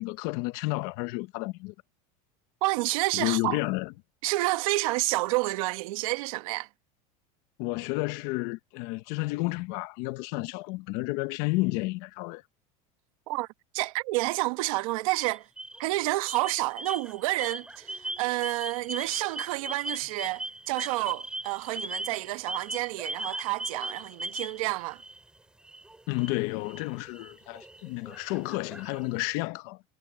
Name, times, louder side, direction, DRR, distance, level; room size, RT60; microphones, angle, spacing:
voice 1, 0.0-1.7 3.1-3.9 7.6-12.4 26.1-29.8, left 22 dB, 60° left, 0.9 m, -31 dB
voice 2, 2.6-3.6 4.2-6.7 13.3-13.5 13.7-15.5 15.8-25.0, right 21 dB, 75° right, 1.3 m, -29 dB
sound 1, 15.1-15.9 16.2-25.3 25.6-29.3, right 2 dB, 5° right, 3.0 m, -39 dB
supercardioid pair, 155°, 18 cm